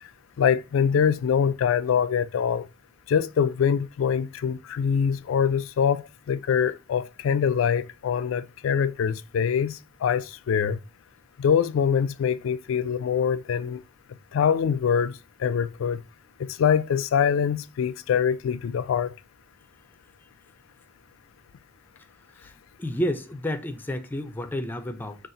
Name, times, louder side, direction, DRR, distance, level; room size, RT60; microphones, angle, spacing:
voice 1, 0.4-2.7 3.1-10.8 11.4-13.8 14.3-16.0 16.4-19.1, left 7 dB, 75° left, 0.3 m, -24 dB
voice 2, 22.8-25.2, equal, 10° left, 0.4 m, -30 dB
4.1 x 2.4 x 3.8 m
head